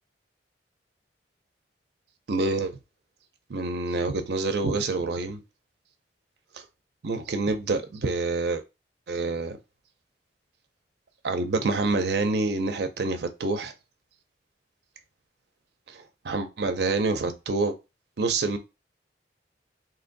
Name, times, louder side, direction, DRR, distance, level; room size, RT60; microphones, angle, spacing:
voice 1, 2.3-2.8 3.5-5.4 6.5-6.6 7.0-8.6 9.1-9.6 11.2-13.7 15.9-17.8 18.2-18.6, right 3 dB, 65° right, 0.5 m, -27 dB
2.8 x 2.6 x 3.8 m
head